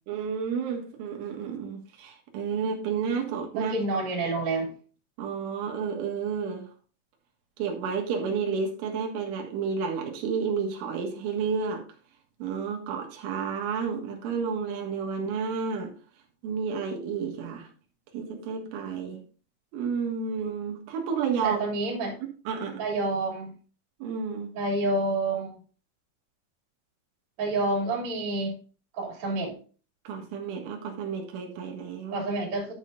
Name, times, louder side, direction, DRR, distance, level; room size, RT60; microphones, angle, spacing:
voice 1, 0.1-3.7 5.2-6.7 7.6-11.8 12.4-15.9 16.4-17.7 18.1-19.2 19.7-21.6 22.2-22.8 24.0-24.5 30.1-32.3, right 6 dB, 90° right, 1 dB, 4.0 m, -31 dB
voice 2, 3.5-4.7 21.4-22.1 22.8-23.5 24.5-25.6 27.4-28.5 28.9-29.6 32.1-32.7, right 2 dB, 35° right, -1 dB, 3.2 m, -28 dB
12.0 x 7.4 x 2.6 m, 0.39 s
omnidirectional pair, 5.4 m